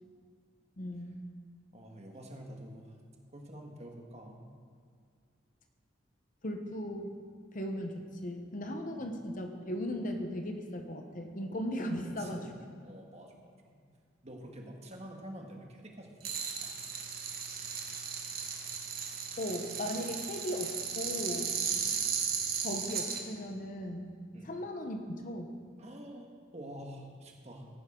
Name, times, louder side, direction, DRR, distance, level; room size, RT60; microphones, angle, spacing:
voice 1, 0.8-1.2 6.4-7.2 7.5-12.4 19.4-21.5 22.6-24.1 24.4-25.6, equal, 45° left, 5 dB, 1.0 m, -37 dB
voice 2, 1.7-3.0 3.3-4.5 8.9-9.0 12.0-13.8 14.2-16.7 21.6-21.9 24.3-24.5 25.8-27.6, right 1 dB, 35° right, 1 dB, 1.5 m, -48 dB
sound 1, 16.2-23.2, right 6 dB, 50° right, 1.3 m, -36 dB
15.0 x 10.5 x 3.8 m, 2.2 s
head